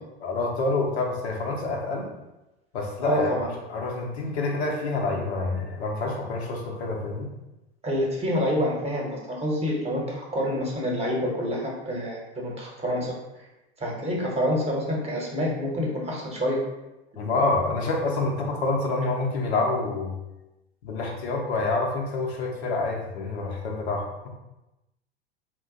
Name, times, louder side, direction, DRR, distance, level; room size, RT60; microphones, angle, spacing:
voice 1, 0.2-2.1 2.7-7.3 17.2-20.2 20.8-24.3, left 3 dB, 80° left, 0 dB, 0.7 m, -27 dB
voice 2, 3.0-3.5 7.8-13.1 13.8-16.6, equal, 20° right, -2 dB, 0.9 m, -27 dB
2.5 x 2.2 x 3.7 m, 0.97 s
hypercardioid pair, 85°, 32 cm